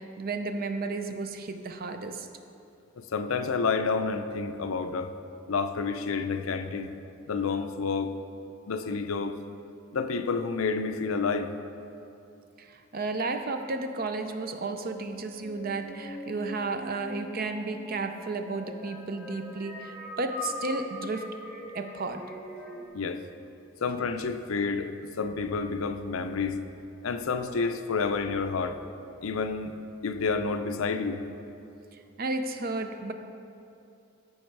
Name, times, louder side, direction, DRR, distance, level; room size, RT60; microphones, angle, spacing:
voice 1, 0.0-2.3 12.6-21.3 21.7-22.2 32.2-33.1, right 3 dB, 45° right, 7 dB, 0.5 m, -33 dB
voice 2, 3.0-5.1 5.5-6.9 7.3-8.1 8.7-9.4 9.9-11.5 22.9-23.3 23.8-24.9 25.2-26.6 27.0-28.8 29.2-29.7 30.0-31.3, left 4 dB, 75° left, 8 dB, 0.5 m, -29 dB
sound 1, 13.4-22.9, left 1 dB, ahead, 0.9 m, -42 dB
14.0 x 5.4 x 4.6 m, 2.7 s
head